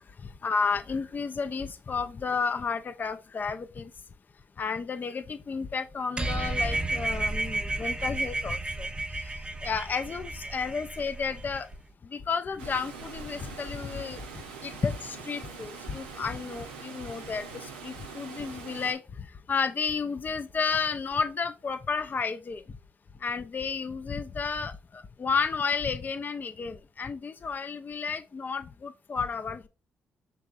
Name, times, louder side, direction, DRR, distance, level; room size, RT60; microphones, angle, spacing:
voice 1, 0.4-3.9 4.6-8.9 9.6-11.7 12.1-14.2 14.6-19.0 19.5-22.6 23.2-24.7 25.2-29.7, left 5 dB, 35° left, 0.4 m, -32 dB
sound 1, 6.2-11.8, right 2 dB, 20° right, 0.5 m, -32 dB
Water, 12.6-18.9, right 5 dB, 90° right, 0.6 m, -43 dB
5.4 x 3.5 x 2.5 m
hypercardioid pair, 45°, 5 cm